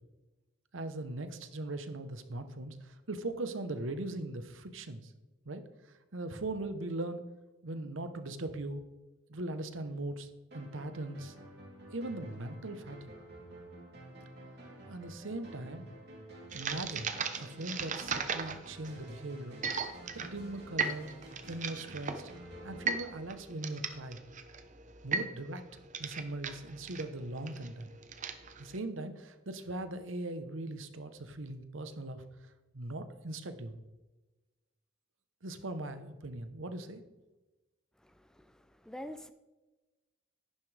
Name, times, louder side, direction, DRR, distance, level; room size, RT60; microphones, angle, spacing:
voice 1, 0.7-5.1 5.4-7.2 7.6-8.8 9.3-10.3 10.5-11.3 11.9-13.1 14.9-15.8 16.5-17.1 17.4-19.6 20.1-21.1 21.5-22.3 22.6-24.2 25.0-25.6 26.0-27.9 28.6-33.8 35.4-37.0, right 2 dB, 75° right, 10 dB, 1.0 m, -40 dB
sound 1, 10.5-24.0, right 1 dB, 55° right, 3.1 m, -51 dB
sound 2, 16.5-28.8, right 5 dB, 40° right, 0.8 m, -38 dB
voice 2, 38.0-39.3, left 1 dB, 5° left, 10 dB, 0.4 m, -47 dB
11.0 x 11.0 x 3.4 m, 1.1 s
head